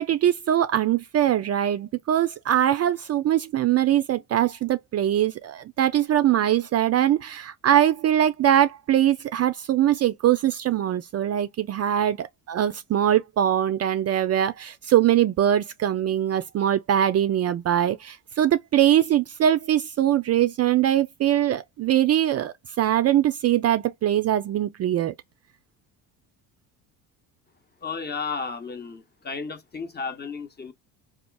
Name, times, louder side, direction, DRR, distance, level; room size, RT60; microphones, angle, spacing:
voice 1, 0.0-25.1, right 11 dB, 35° right, 0.4 m, -22 dB
voice 2, 27.8-30.7, left 5 dB, 25° left, 0.8 m, -33 dB
4.1 x 2.4 x 2.2 m
hypercardioid pair, 70°, 43 cm